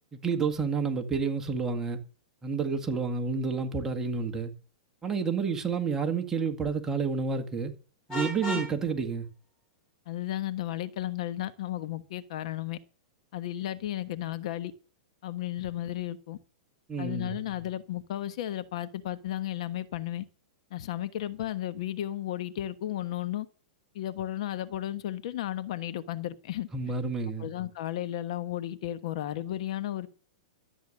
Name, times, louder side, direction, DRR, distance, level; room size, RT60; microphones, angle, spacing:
voice 1, 0.1-2.0 2.4-4.5 5.0-7.7 8.1-9.3 16.9-17.4 26.7-27.5, right 5 dB, 15° right, 1.8 m, -30 dB
Vehicle horn car horn honking, 8.1-8.7, equal, 25° left, 7.4 m, -33 dB
voice 2, 10.1-12.8 13.3-14.7 15.2-16.4 17.0-20.2 20.7-23.5 23.9-26.7 27.4-30.1, left 13 dB, 60° left, 1.2 m, -34 dB
13.0 x 8.6 x 6.5 m
hypercardioid pair, 145°, 4 cm